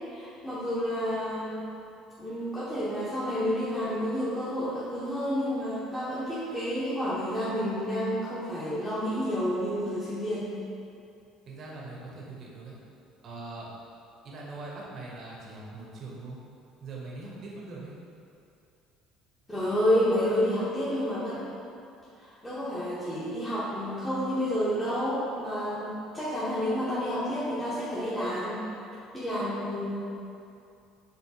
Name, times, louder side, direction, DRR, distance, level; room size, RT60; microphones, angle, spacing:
voice 1, 0.1-1.7 2.2-10.5 19.5-21.4 22.2-28.6 29.1-30.1, equal, 10° left, -11 dB, 1.0 m, -30 dB
voice 2, 11.5-12.8 13.2-13.7 14.2-16.4 16.8-17.9, right 2 dB, 45° right, -3 dB, 0.9 m, -41 dB
5.7 x 3.1 x 2.9 m, 2.6 s
figure-of-eight pair, 60°, 0 cm